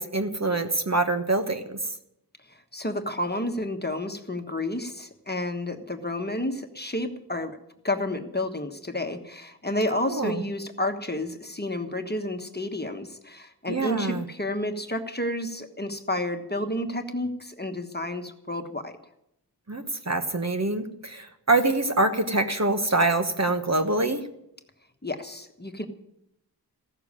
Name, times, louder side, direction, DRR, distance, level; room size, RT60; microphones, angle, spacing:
voice 1, 0.0-1.8 10.1-10.4 13.7-14.2 19.7-24.3, right 2 dB, 40° right, 6 dB, 1.2 m, -25 dB
voice 2, 2.5-7.6 7.8-18.9 25.0-25.9, left 1 dB, 25° left, 6 dB, 1.3 m, -30 dB
15.5 x 6.9 x 9.8 m, 0.81 s
wide cardioid pair, 55°, 39 cm